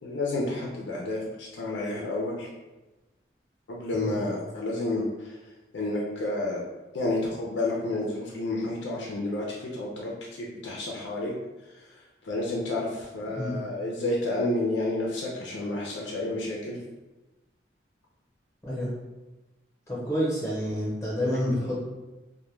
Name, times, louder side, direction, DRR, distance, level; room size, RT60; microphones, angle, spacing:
voice 1, 0.0-2.5 3.7-5.4 5.7-6.6 6.9-11.3 11.7-12.0 12.2-16.8, left 2 dB, 85° left, -3 dB, 0.5 m, -30 dB
voice 2, 18.6-18.9 19.9-21.9, equal, 15° left, -6 dB, 0.7 m, -29 dB
2.2 x 2.2 x 3.1 m, 1.1 s
head